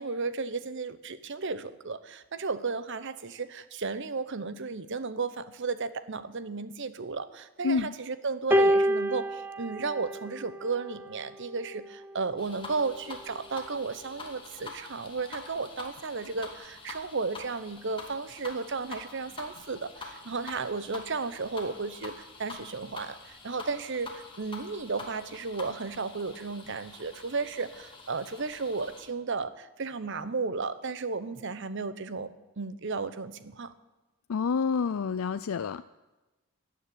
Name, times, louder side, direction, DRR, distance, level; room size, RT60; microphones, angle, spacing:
voice 1, 0.0-23.2 23.4-33.7, right 4 dB, 60° right, 14 dB, 0.9 m, -34 dB
sound 1, 8.5-11.0 12.0-12.2, equal, 10° right, 0.8 m, -27 dB
sound 2, 12.4-29.1, left 3 dB, 25° left, 2.4 m, -46 dB
voice 2, 34.3-35.8, left 5 dB, 80° left, 13 dB, 0.4 m, -28 dB
15.0 x 9.6 x 8.5 m, 1.1 s
head